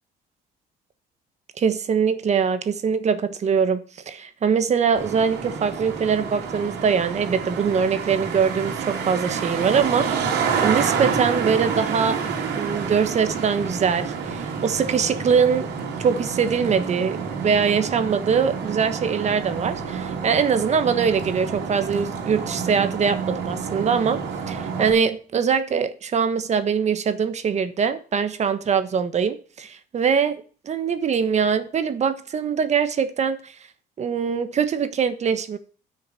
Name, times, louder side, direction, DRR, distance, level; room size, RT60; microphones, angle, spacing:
voice 1, 1.6-10.3 10.6-15.7 16.0-17.2 17.4-24.2 24.5-33.5 34.0-35.6, right 6 dB, 40° right, 1.3 m, -22 dB
Traffic noise roadway noise, 5.0-24.9, right 6 dB, 85° right, 3.0 m, -29 dB
9.5 x 6.5 x 6.9 m
cardioid pair, 110°, 17 cm